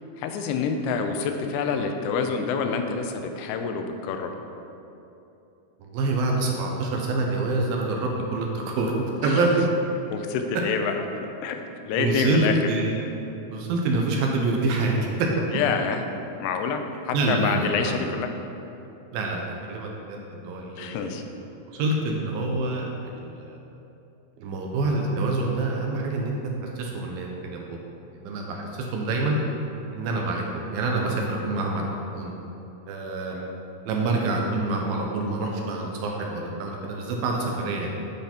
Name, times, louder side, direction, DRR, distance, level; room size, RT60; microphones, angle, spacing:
voice 1, 0.2-4.3 9.2-9.4 10.1-11.6 11.9-12.7 15.5-16.0 16.4-18.3 20.8-21.2 33.3-33.5, left 5 dB, 90° left, 5 dB, 2.7 m, -27 dB
voice 2, 5.8-8.9 9.2-9.5 12.0-13.0 13.5-15.3 17.1-18.0 19.1-21.0 21.7-23.6 24.4-26.4 26.8-27.8 28.1-29.4 29.9-31.8 32.1-32.3 32.9-33.3 33.9-38.0, right 2 dB, 75° right, 0 dB, 2.4 m, -26 dB
10.5 x 5.7 x 4.4 m, 2.8 s
omnidirectional pair, 4.6 m